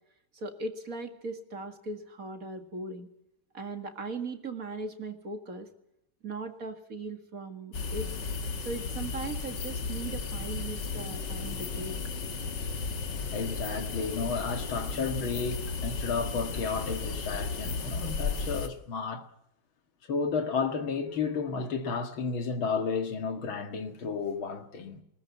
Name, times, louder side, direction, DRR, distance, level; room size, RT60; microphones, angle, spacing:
voice 1, 0.3-3.1 3.5-5.7 6.2-8.1 8.6-12.0, right 3 dB, 45° right, 2.3 m, -38 dB
sound 1, 7.7-18.7, left 4 dB, 55° left, 2.4 m, -34 dB
voice 2, 13.3-19.2 20.0-25.0, left 5 dB, 75° left, 2.7 m, -32 dB
20.5 x 18.5 x 8.4 m
omnidirectional pair, 2.2 m